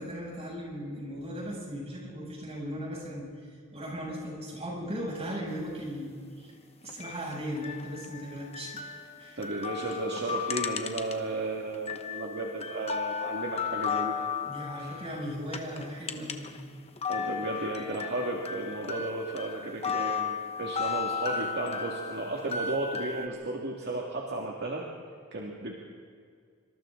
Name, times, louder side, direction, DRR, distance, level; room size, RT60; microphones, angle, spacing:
voice 1, 0.0-3.3 3.7-6.1 6.4-6.5 6.8-8.8 9.2-9.4 14.4-16.6, equal, 30° right, -3 dB, 7.1 m, -37 dB
sound 1, 6.9-11.4 11.7-16.6 16.9-23.3, left 6 dB, 30° left, 1.1 m, -35 dB
voice 2, 9.4-14.2 14.8-14.9 17.1-24.9 25.3-25.7, right 2 dB, 50° right, -1 dB, 2.1 m, -34 dB
26.5 x 25.5 x 3.9 m, 2.2 s
head